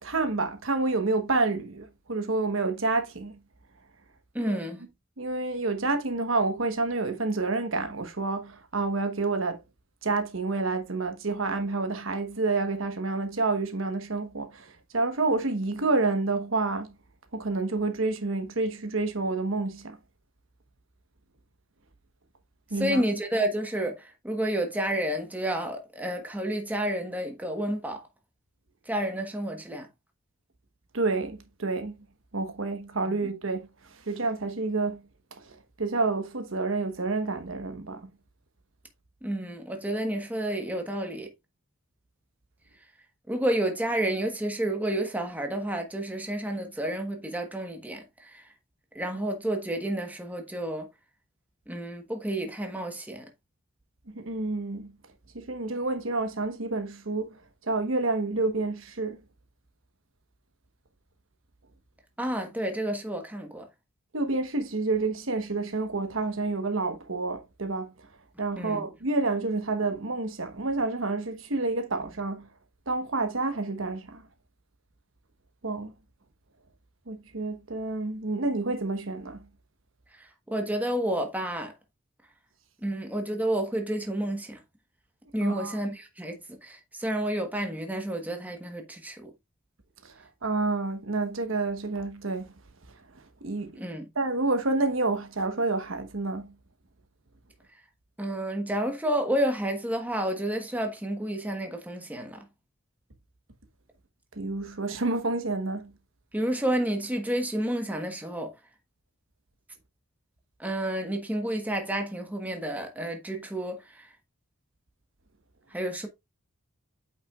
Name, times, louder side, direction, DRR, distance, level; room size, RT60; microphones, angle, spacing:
voice 1, 0.0-3.4 4.4-4.5 5.2-9.6 10.0-16.9 17.3-20.0 22.7-23.0 30.9-32.0 32.3-33.7 34.1-35.0 35.8-38.1 54.1-54.9 55.3-57.3 57.7-59.2 64.1-67.9 68.4-72.4 72.9-74.2 75.6-75.9 77.1-79.4 85.4-85.8 90.4-92.5 93.4-93.7 94.1-96.4 104.4-105.9, right 3 dB, 70° right, 1.2 m, -29 dB
voice 2, 4.3-4.8 22.8-28.0 28.9-29.9 33.1-33.3 39.2-41.3 43.3-48.4 48.9-50.9 51.7-53.3 62.2-63.7 68.5-68.8 80.1-81.7 82.8-84.6 85.3-89.3 93.8-94.0 98.2-102.5 106.3-108.5 110.6-114.1 115.7-116.1, right 1 dB, 10° right, 1.2 m, -30 dB
8.3 x 6.0 x 2.4 m
head